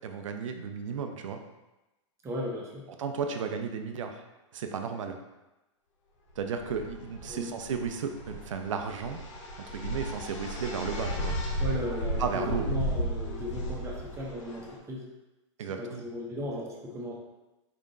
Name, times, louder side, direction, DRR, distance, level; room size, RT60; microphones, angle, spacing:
voice 1, 0.0-1.4 3.0-4.2 4.5-5.2 6.4-9.2 9.7-11.4 12.2-12.7 15.6-16.0, right 6 dB, 80° right, 5 dB, 0.6 m, -34 dB
voice 2, 2.2-2.8 7.3-7.5 11.6-15.1 15.8-17.1, left 1 dB, 15° right, -2 dB, 0.9 m, -36 dB
sound 1, 6.4-14.7, equal, 75° left, 0.8 m, -34 dB
4.4 x 3.7 x 2.6 m, 1.0 s
hypercardioid pair, 125°, 16 cm